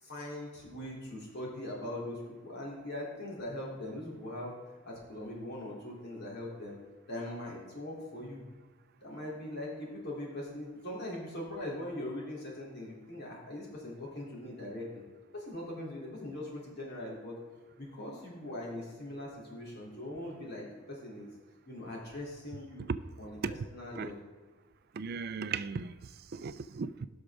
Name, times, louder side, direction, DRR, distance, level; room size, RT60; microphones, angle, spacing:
voice 1, 0.0-4.5 4.8-6.8 7.1-8.4 9.0-15.0 15.3-17.4 17.8-21.3 21.7-22.9 23.2-24.2, left 1 dB, 55° left, 3.0 m, -41 dB
voice 2, 24.9-27.1, right 5 dB, 50° right, 0.4 m, -36 dB
16.0 x 6.3 x 3.6 m
head